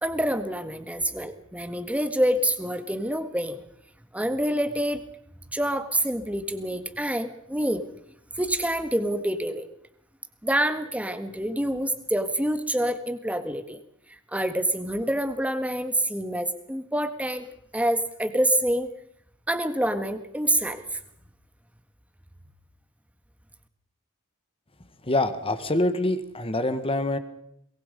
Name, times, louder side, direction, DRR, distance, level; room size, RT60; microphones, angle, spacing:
voice 1, 0.0-3.6 4.1-5.0 5.5-7.8 8.3-9.7 10.4-13.8 14.3-17.5 17.7-18.9 19.5-21.0, right 1 dB, 5° right, 9 dB, 1.7 m, -27 dB
voice 2, 25.0-27.2, left 1 dB, 25° left, 10 dB, 1.7 m, -25 dB
23.0 x 21.5 x 5.3 m, 0.75 s
head